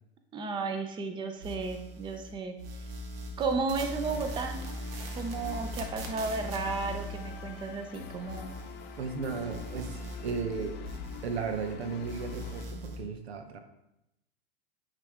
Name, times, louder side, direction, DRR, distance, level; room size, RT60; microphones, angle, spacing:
voice 1, 0.3-2.6 3.4-4.6 5.2-8.5, right 4 dB, 15° right, 6 dB, 0.5 m, -33 dB
sound 1, 1.4-2.3 2.6-9.2 9.4-11.7 12.0-13.0, right 1 dB, 70° right, 1.4 m, -41 dB
sound 2, 3.7-12.7, left 6 dB, 35° left, 0.8 m, -45 dB
voice 2, 9.0-10.8 11.2-13.6, right 5 dB, 90° right, 7 dB, 0.9 m, -35 dB
9.6 x 3.4 x 3.6 m, 0.86 s
hypercardioid pair, 115°, 31 cm